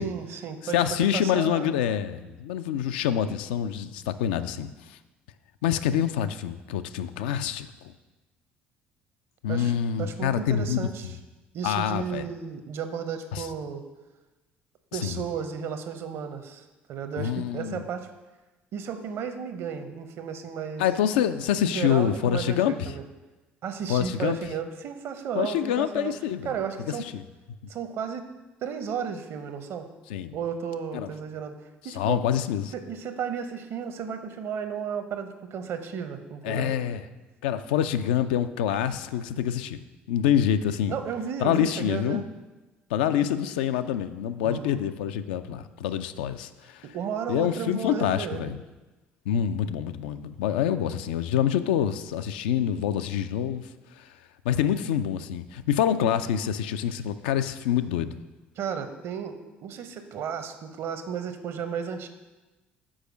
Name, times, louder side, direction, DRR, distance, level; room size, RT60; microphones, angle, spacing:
voice 1, 0.0-1.7 9.5-9.7 10.0-11.1 11.5-13.8 14.9-18.1 18.7-20.8 21.6-23.0 23.6-26.1 26.4-27.1 27.7-28.3 28.6-29.9 30.3-31.5 31.8-32.2 32.7-36.7 40.9-42.3 44.4-44.8 46.8-48.5 58.6-59.3 59.6-62.1, right 7 dB, 50° right, 8 dB, 0.7 m, -33 dB
voice 2, 0.6-5.0 5.6-7.9 9.4-11.1 11.6-12.3 13.3-13.5 14.9-15.2 17.2-17.8 20.8-22.9 23.9-24.4 25.4-26.5 27.0-27.2 30.1-30.4 30.9-31.1 31.9-32.7 36.4-37.0 37.4-39.8 40.1-41.0 41.4-42.2 42.9-46.9 47.3-48.6 49.3-54.1 54.4-58.2, left 9 dB, 65° left, 10 dB, 0.3 m, -26 dB
6.3 x 4.8 x 6.2 m, 1.1 s
figure-of-eight pair, 55°, 6 cm